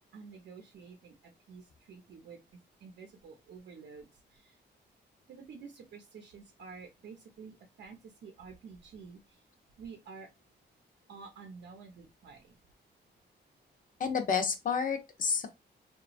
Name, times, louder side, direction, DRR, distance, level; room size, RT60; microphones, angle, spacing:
voice 1, 0.1-2.4 2.8-4.6 5.3-9.4 9.8-10.3 11.1-12.6, right 5 dB, 75° right, 0.6 m, -50 dB
voice 2, 14.0-15.5, left 6 dB, 50° left, 0.7 m, -30 dB
2.9 x 2.3 x 2.4 m
wide cardioid pair, 125°, 18 cm